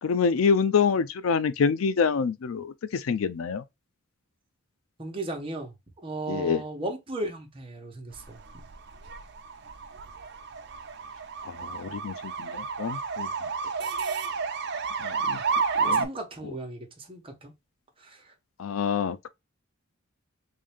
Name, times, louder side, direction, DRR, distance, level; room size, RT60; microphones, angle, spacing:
voice 1, 0.0-3.6 6.3-6.6 11.4-13.3 15.0-15.4 15.8-16.1 18.6-19.3, left 6 dB, 85° left, 0.4 m, -26 dB
voice 2, 5.0-5.7 6.0-8.4 15.3-15.4 15.8-17.5 18.0-18.3, right 2 dB, 25° right, 1.1 m, -36 dB
sound 1, 8.2-16.1, right 5 dB, 55° right, 0.6 m, -31 dB
3.6 x 2.7 x 3.4 m
head